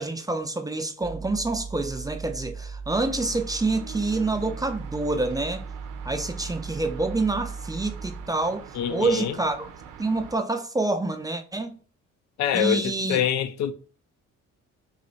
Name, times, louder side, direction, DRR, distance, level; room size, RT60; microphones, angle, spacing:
voice 1, 0.0-5.6 6.0-9.7 10.0-11.8 12.5-13.2, right 2 dB, 10° right, 0.4 m, -27 dB
sound 1, 1.0-8.3, right 5 dB, 30° right, 0.8 m, -38 dB
sound 2, 3.1-10.4, right 8 dB, 85° right, 0.6 m, -44 dB
voice 2, 8.7-9.3 12.4-13.7, left 9 dB, 65° left, 0.4 m, -25 dB
3.1 x 3.0 x 4.1 m
cardioid pair, 90°, 30 cm